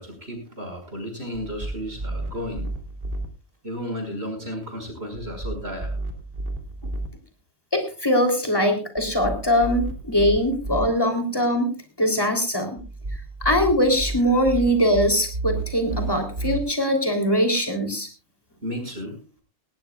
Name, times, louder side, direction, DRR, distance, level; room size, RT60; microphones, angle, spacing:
voice 1, 0.0-2.7 3.6-5.9 18.6-19.2, equal, 70° right, 4 dB, 5.9 m, -33 dB
sound 1, 1.3-3.3 5.2-7.1 9.0-10.9 12.8-16.6, right 2 dB, 50° right, 2.5 m, -32 dB
voice 2, 7.7-12.8 13.4-18.1, equal, 20° left, 5 dB, 3.4 m, -22 dB
18.5 x 18.0 x 2.3 m, 0.35 s
omnidirectional pair, 1.1 m